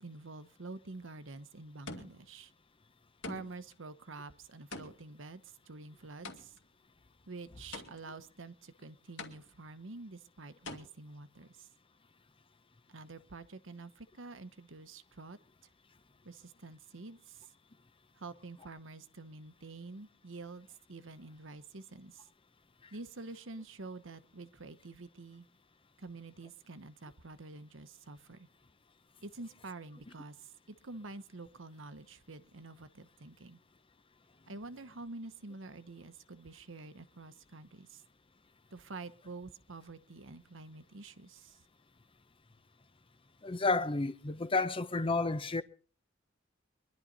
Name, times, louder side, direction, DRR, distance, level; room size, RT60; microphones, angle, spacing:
voice 1, 0.0-2.5 3.3-6.5 7.3-11.7 12.9-15.4 16.2-17.5 18.1-22.3 22.9-25.5 26.0-28.5 29.2-33.6 34.5-38.0 38.7-41.6, right 3 dB, 75° right, 1.0 m, -48 dB
sound 1, 0.8-1.2 1.9-2.4 3.2-3.8 4.7-6.8 7.7-8.3 9.2-9.8 10.7-10.8, left 3 dB, 70° left, 2.4 m, -46 dB
voice 2, 43.4-45.6, left 3 dB, 25° left, 0.8 m, -31 dB
23.0 x 11.5 x 4.0 m
head